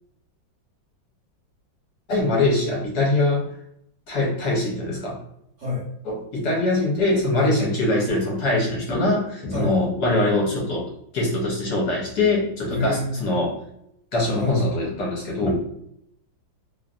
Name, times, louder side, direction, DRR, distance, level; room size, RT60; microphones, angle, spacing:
voice 1, 2.1-3.5 4.1-5.2 6.0-13.6 14.1-15.6, left 2 dB, 65° left, -3 dB, 1.2 m, -23 dB
voice 2, 12.7-13.2 14.3-14.6, left 2 dB, 50° right, -6 dB, 1.0 m, -27 dB
3.1 x 2.5 x 2.3 m, 0.75 s
omnidirectional pair, 2.0 m